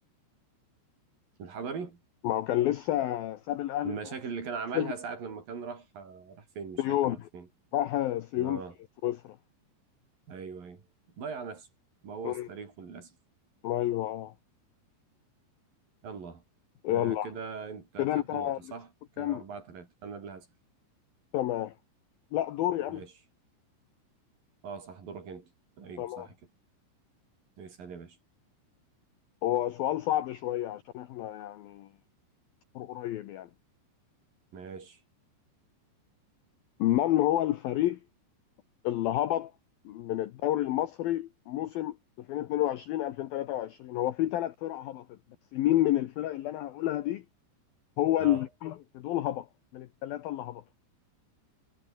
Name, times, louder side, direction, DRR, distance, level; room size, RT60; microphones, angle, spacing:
voice 1, 1.4-2.0 3.8-7.5 8.4-8.8 10.3-10.8 11.2-11.7 12.0-13.2 16.0-16.4 16.9-18.9 19.2-20.5 22.9-23.1 24.6-25.5 25.8-26.4 27.6-28.2 34.5-35.0 48.2-48.5, right 5 dB, 50° right, 5.8 m, -40 dB
voice 2, 2.2-3.9 4.7-4.9 6.8-7.3 7.7-8.6 9.0-9.4 12.2-12.5 13.6-14.3 16.8-17.3 18.0-18.6 19.2-19.4 21.3-21.7 22.3-23.0 26.0-26.3 29.4-31.9 32.8-33.5 36.8-38.0 38.8-39.5 39.9-45.1 45.5-47.2 48.0-49.5 49.7-50.6, left 13 dB, 75° left, 2.2 m, -29 dB
omnidirectional pair, 5.5 m